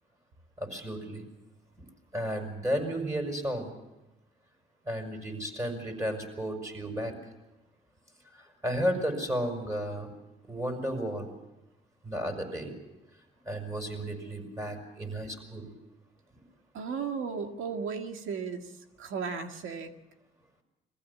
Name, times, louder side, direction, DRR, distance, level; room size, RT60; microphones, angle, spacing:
voice 1, 0.6-1.2 2.1-3.7 4.9-7.1 8.3-10.1 10.5-11.3 12.0-12.7 13.5-15.7, equal, 15° right, 4 dB, 6.0 m, -33 dB
voice 2, 16.7-18.7 19.0-19.9, right 5 dB, 85° right, 6 dB, 1.9 m, -35 dB
22.5 x 15.5 x 8.5 m, 0.98 s
cardioid pair, 90°, 20 cm